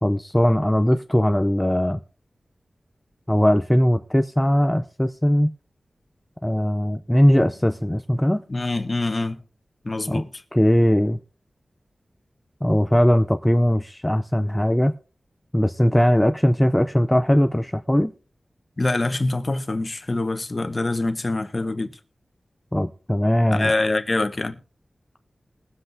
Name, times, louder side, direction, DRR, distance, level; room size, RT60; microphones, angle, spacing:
voice 1, 0.0-2.0 3.3-5.5 6.4-8.4 10.1-10.2 10.5-11.2 12.6-14.9 15.5-18.1 22.7-23.7, equal, 10° left, 0.5 m, -19 dB
voice 2, 8.5-9.4 9.8-10.3 18.8-21.9 23.5-24.6, left 2 dB, 40° left, 1.1 m, -25 dB
21.5 x 7.8 x 2.7 m
wide cardioid pair, 70°, 0 cm